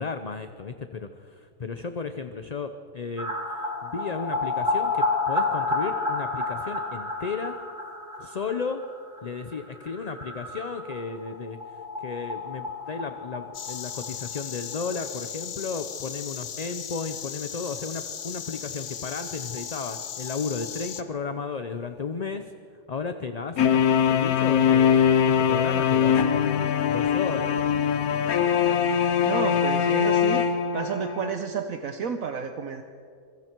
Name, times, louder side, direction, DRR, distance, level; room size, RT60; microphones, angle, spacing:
voice 1, 0.0-7.6 8.2-8.8 9.2-11.6 12.0-22.5 22.9-27.8, left 5 dB, 35° left, 8 dB, 0.7 m, -34 dB
sound 1, 3.2-14.8 15.1-15.2 15.4-15.5 18.5-18.6 18.9-19.0 19.2-21.0 21.3-21.4, left 3 dB, 35° right, 3.7 m, -31 dB
Insect, 13.5-21.0, left 9 dB, 65° left, 1.3 m, -37 dB
sound 2, 23.6-31.3, left 8 dB, 85° left, 1.4 m, -22 dB
voice 2, 29.2-30.5 30.7-32.8, right 7 dB, 70° right, 7 dB, 1.3 m, -31 dB
25.5 x 23.5 x 4.6 m, 2.4 s
omnidirectional pair, 1.5 m